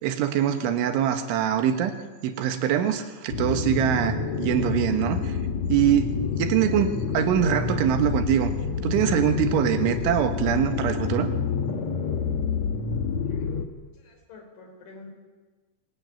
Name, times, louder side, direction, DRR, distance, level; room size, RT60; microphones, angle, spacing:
voice 1, 0.0-1.9 2.2-5.4 5.7-6.1 6.4-8.5 8.8-11.3, right 10 dB, 90° right, 7 dB, 3.9 m, -23 dB
sound 1, 3.3-13.6, left 6 dB, 60° left, 1.9 m, -28 dB
voice 2, 13.3-13.6 13.9-15.1, left 3 dB, 80° left, 2 dB, 7.5 m, -48 dB
23.0 x 19.5 x 9.4 m, 1.3 s
omnidirectional pair, 5.3 m